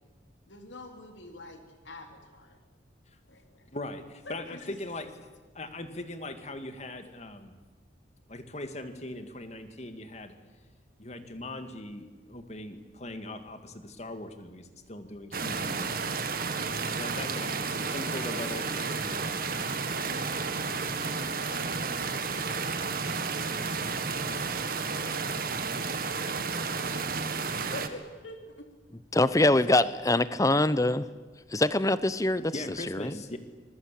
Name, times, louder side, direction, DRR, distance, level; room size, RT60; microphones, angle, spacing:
voice 1, 0.5-2.6 3.3-3.7 4.3-4.8 15.3-16.1 18.3-18.9 20.0-25.9 27.4-28.7 29.2-29.5, left 2 dB, 85° left, 4 dB, 3.7 m, -48 dB
voice 2, 3.7-5.1 5.5-7.6 8.3-10.3 11.0-16.0 17.0-19.5 32.5-33.4, left 1 dB, 40° left, 8 dB, 2.3 m, -40 dB
sound 1, 15.3-27.9, right 4 dB, 50° right, 1.8 m, -32 dB
voice 3, 29.1-31.0 31.5-32.5 32.9-33.2, left 2 dB, 20° left, 15 dB, 0.9 m, -24 dB
27.0 x 21.5 x 8.6 m, 1.3 s
head